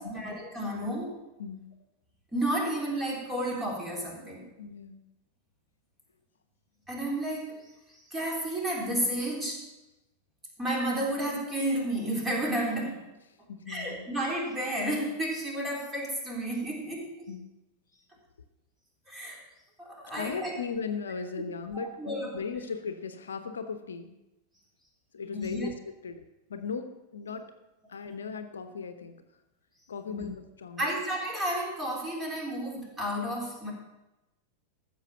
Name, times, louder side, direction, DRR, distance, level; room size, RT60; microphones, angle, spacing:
voice 1, 0.1-1.2 2.3-4.5 6.9-7.6 7.9-9.6 10.6-13.1 13.7-17.3 19.1-19.4 19.8-20.5 21.4-21.5 21.7-22.3 25.3-25.7 30.1-30.3 30.8-33.7, right 1 dB, 15° right, -2 dB, 3.5 m, -32 dB
voice 2, 4.6-5.0 13.5-14.1 17.3-17.5 20.2-24.1 25.1-26.2 26.5-27.5 27.9-29.2 29.9-30.9, left 5 dB, 70° left, 9 dB, 0.9 m, -37 dB
14.0 x 7.1 x 5.7 m, 0.96 s
figure-of-eight pair, 90°, 0 cm